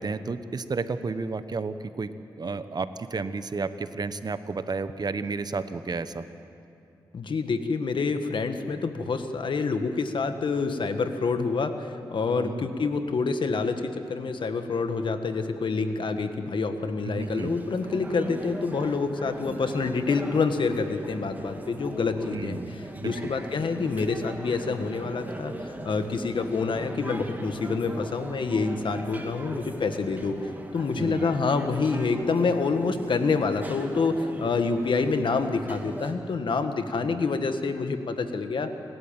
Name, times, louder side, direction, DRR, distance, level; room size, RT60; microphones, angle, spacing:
voice 1, 0.0-2.1 2.4-6.3 12.4-12.7 17.0-17.6 22.3-23.3 31.0-31.3 37.0-37.2, right 4 dB, 50° right, 11 dB, 1.1 m, -32 dB
voice 2, 7.1-22.6 23.0-30.4 30.7-38.7, left 4 dB, 70° left, 8 dB, 1.6 m, -27 dB
sound 1, 17.2-36.1, right 1 dB, 20° right, 2.5 m, -40 dB
29.5 x 13.0 x 8.9 m, 2.7 s
cardioid pair, 55°, 9 cm